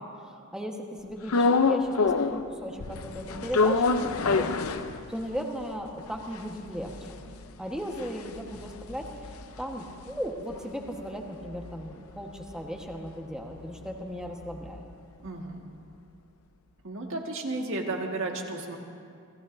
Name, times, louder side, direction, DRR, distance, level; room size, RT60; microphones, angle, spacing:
voice 1, 0.0-4.5 5.1-7.0 7.6-14.8, equal, 5° right, 1 dB, 1.2 m, -36 dB
sound 1, 1.3-2.5 2.8-5.4 5.8-5.9 6.0-10.5 10.9-14.9, left 4 dB, 70° left, 0.6 m, -28 dB
voice 2, 15.2-15.6 16.8-18.8, right 2 dB, 65° right, 1 dB, 1.7 m, -33 dB
26.0 x 17.0 x 2.7 m, 2.4 s
head